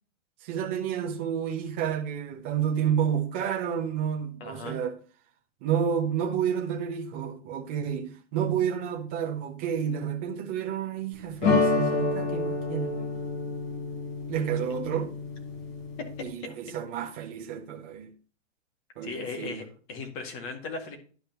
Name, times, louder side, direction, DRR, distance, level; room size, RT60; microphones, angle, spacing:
voice 1, 0.4-5.0 5.6-13.0 14.3-15.1 16.2-18.1 19.0-19.6, right 8 dB, 10° right, 0.4 m, -30 dB
voice 2, 4.4-4.8 16.0-16.5 19.0-21.0, left 4 dB, 30° left, 2.0 m, -37 dB
sound 1, 11.4-16.3, left 3 dB, 55° left, 3.7 m, -29 dB
11.5 x 5.1 x 2.9 m
hypercardioid pair, 165°, 36 cm